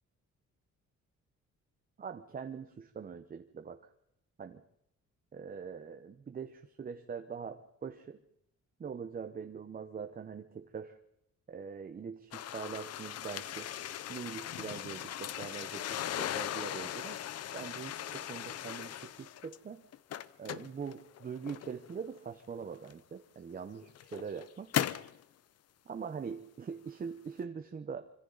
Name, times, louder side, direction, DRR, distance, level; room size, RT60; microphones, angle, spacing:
voice 1, 2.0-3.8 4.4-4.6 5.3-8.2 8.8-11.0 11.5-13.7 14.1-17.2 17.5-19.8 20.4-24.7 25.8-28.1, right 6 dB, 30° right, 7 dB, 0.8 m, -43 dB
sound 1, 12.3-19.6 19.9-21.9 22.9-23.0 23.7-25.2, left 11 dB, 60° left, 0.7 m, -38 dB
25.5 x 25.5 x 4.0 m, 0.77 s
cardioid pair, 160°, 29 cm